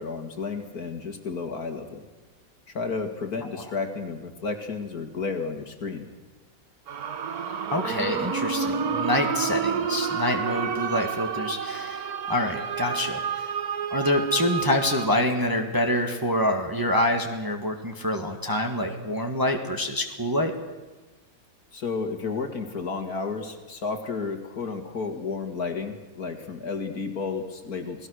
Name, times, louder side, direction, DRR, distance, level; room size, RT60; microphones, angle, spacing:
voice 1, 0.0-2.0 2.7-6.1 21.7-28.1, left 4 dB, 55° left, 6 dB, 2.4 m, -32 dB
sound 1, 6.9-15.1, right 6 dB, 55° right, 1.5 m, -29 dB
voice 2, 7.7-13.4 13.9-20.5, left 1 dB, 10° right, 3 dB, 1.6 m, -26 dB
28.5 x 18.5 x 6.5 m, 1.2 s
omnidirectional pair, 2.0 m